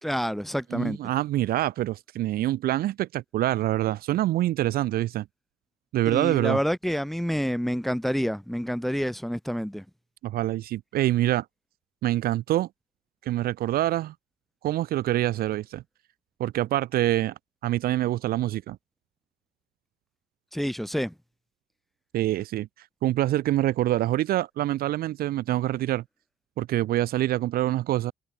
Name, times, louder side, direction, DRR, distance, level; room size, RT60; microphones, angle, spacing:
voice 1, 0.0-1.0 6.0-9.8 20.5-21.1, equal, ahead, 1.4 m, -28 dB
voice 2, 0.7-5.2 5.9-6.6 10.2-11.5 12.0-12.7 13.3-14.1 14.6-15.8 16.4-17.3 17.6-18.8 22.1-22.7 23.0-26.0 26.6-28.1, right 14 dB, 60° right, 0.6 m, -25 dB
cardioid pair, 110°, 17 cm